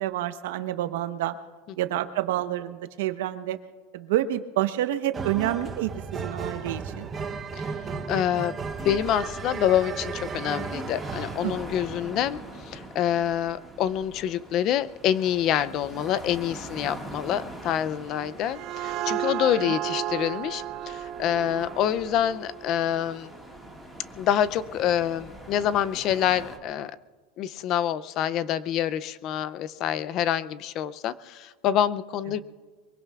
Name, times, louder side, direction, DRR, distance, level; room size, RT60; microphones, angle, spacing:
voice 1, 0.0-1.4 1.8-3.6 3.9-7.1 11.4-11.6 19.7-19.8 32.3-32.4, right 13 dB, 80° right, 10 dB, 0.9 m, -28 dB
sound 1, 5.1-11.4, right 5 dB, 20° right, 0.8 m, -34 dB
voice 2, 8.1-12.4 12.7-23.3 24.2-26.9 27.4-32.4, left 10 dB, 35° left, 15 dB, 0.4 m, -26 dB
sound 2, 8.5-26.6, right 1 dB, 5° left, 1.7 m, -43 dB
sound 3, 18.2-23.6, right 11 dB, 35° right, 0.4 m, -34 dB
23.5 x 22.5 x 2.4 m, 1.4 s
supercardioid pair, 175°, 0 cm